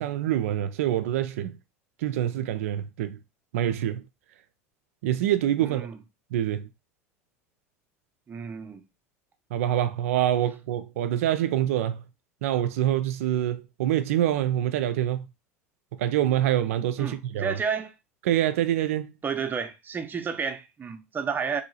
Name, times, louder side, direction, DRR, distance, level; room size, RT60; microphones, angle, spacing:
voice 1, 0.0-1.5 2.0-3.2 3.5-4.0 5.0-5.9 6.3-6.7 9.5-12.0 12.4-15.2 16.0-17.6 18.3-19.1, right 12 dB, 70° right, 0.3 m, -25 dB
voice 2, 5.6-6.0 8.3-8.8 17.0-17.9 19.2-21.6, right 6 dB, 25° right, 0.6 m, -31 dB
2.8 x 2.7 x 2.7 m
hypercardioid pair, 80°, 8 cm